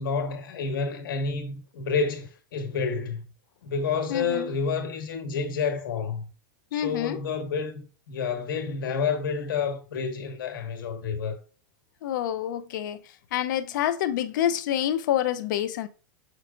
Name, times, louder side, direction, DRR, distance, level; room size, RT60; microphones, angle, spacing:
voice 1, 0.0-3.2 3.6-6.3 6.7-7.7 8.1-11.4, left 5 dB, 80° left, 1.7 m, -29 dB
voice 2, 4.1-4.5 6.7-7.2 12.0-13.0 13.3-15.9, left 11 dB, 65° left, 0.7 m, -27 dB
6.5 x 6.0 x 2.5 m
supercardioid pair, 140°, 11 cm